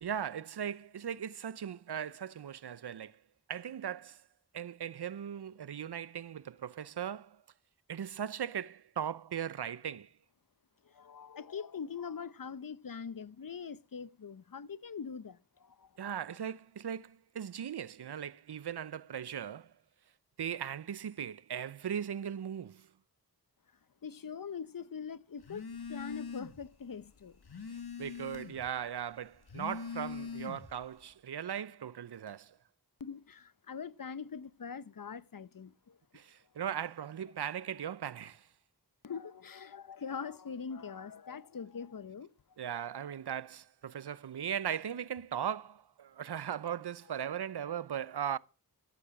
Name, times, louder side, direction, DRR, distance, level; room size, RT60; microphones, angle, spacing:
voice 1, 0.0-3.2 3.5-4.2 4.5-7.4 7.9-10.1 16.0-19.7 20.4-22.9 28.0-32.6 36.1-38.5 42.6-48.4, right 9 dB, 90° right, 0.7 m, -38 dB
voice 2, 10.8-16.2 24.0-27.4 33.0-36.0 39.0-42.3, left 6 dB, 60° left, 0.9 m, -43 dB
Telephone, 25.4-26.7 27.0-28.7 29.3-30.8, left 5 dB, 75° left, 1.8 m, -42 dB
13.5 x 12.0 x 6.0 m
wide cardioid pair, 55°, 38 cm